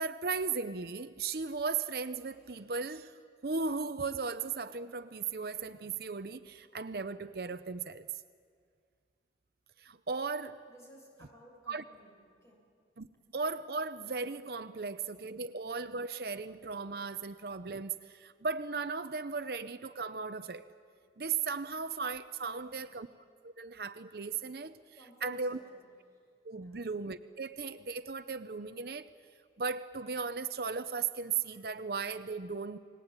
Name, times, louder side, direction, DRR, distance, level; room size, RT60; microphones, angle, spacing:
voice 1, 0.0-3.1 3.4-8.1 9.8-10.6 11.7-11.8 13.0-13.1 13.3-20.6 21.2-23.1 23.4-24.8 25.2-25.6 26.4-29.1 29.6-32.8, right 4 dB, 60° right, 11 dB, 0.7 m, -36 dB
voice 2, 10.7-12.6 22.4-22.9 24.9-25.8 26.1-26.2 26.5-26.9, equal, 15° left, -1 dB, 7.4 m, -57 dB
30.0 x 20.0 x 8.9 m, 2.1 s
head